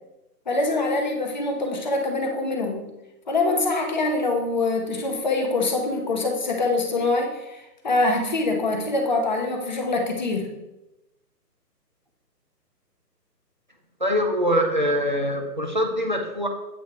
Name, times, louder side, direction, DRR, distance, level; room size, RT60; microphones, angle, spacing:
voice 1, 0.5-2.9 3.3-7.6 7.8-10.5, left 2 dB, 30° left, 2 dB, 0.7 m, -24 dB
voice 2, 14.0-16.5, equal, 30° right, 3 dB, 0.4 m, -23 dB
8.1 x 2.7 x 4.6 m, 0.98 s
figure-of-eight pair, 150°, 49 cm